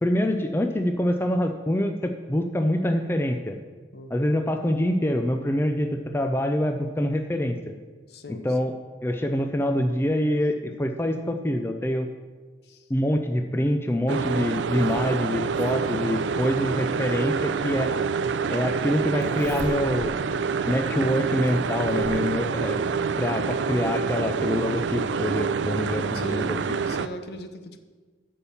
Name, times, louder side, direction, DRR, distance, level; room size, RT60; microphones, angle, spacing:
voice 1, 0.0-3.6 4.1-7.7 8.3-8.7 9.0-12.1 12.9-17.9 18.5-20.1 20.7-22.8 23.2-26.6, left 1 dB, 15° left, 6 dB, 0.4 m, -25 dB
voice 2, 8.1-8.8 12.6-12.9 26.1-26.6 26.9-27.8, right 1 dB, 60° left, 8 dB, 0.7 m, -40 dB
sound 1, 14.1-27.1, right 5 dB, 85° right, 0.4 m, -27 dB
Zipper (clothing), 14.3-16.1 17.5-17.6 19.2-20.2 20.7-20.8 21.5-22.3 23.5-23.6 23.9-24.0, right 1 dB, 40° right, 0.8 m, -40 dB
8.4 x 5.5 x 7.1 m, 1.4 s
head